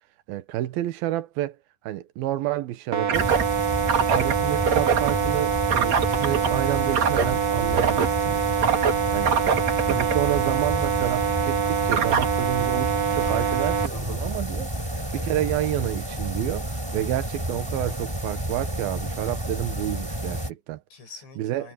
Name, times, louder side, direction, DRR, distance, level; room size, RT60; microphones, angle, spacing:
voice 1, 0.3-1.6 1.8-3.3 4.1-8.5 9.1-9.3 9.9-14.7 15.1-20.8 21.4-21.7, right 14 dB, 70° right, 2.7 m, -29 dB
sound 1, 2.9-13.9, right 7 dB, 45° right, 2.7 m, -23 dB
sound 2, 3.1-20.5, right 1 dB, 5° right, 3.4 m, -31 dB
voice 2, 9.1-10.0 13.1-14.4 14.8-15.3 20.9-21.7, left 4 dB, 75° left, 9.8 m, -45 dB
omnidirectional pair, 5.1 m